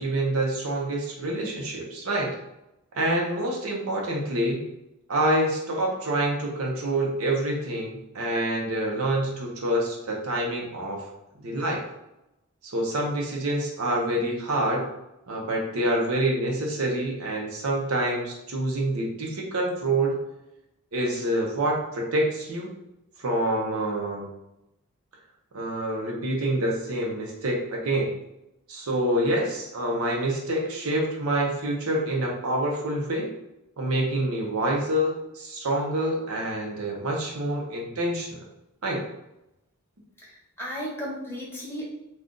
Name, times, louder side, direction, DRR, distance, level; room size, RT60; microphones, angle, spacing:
voice 1, 0.0-2.3 2.9-4.6 5.1-11.1 11.4-11.8 12.6-14.9 15.3-20.2 20.9-22.7 23.2-24.3 25.5-28.1 28.7-33.3 33.8-38.4 38.8-39.0, right 1 dB, 75° right, -1 dB, 0.7 m, -27 dB
voice 2, 40.2-41.8, equal, 10° left, -5 dB, 0.8 m, -35 dB
2.5 x 2.4 x 3.7 m, 0.90 s
head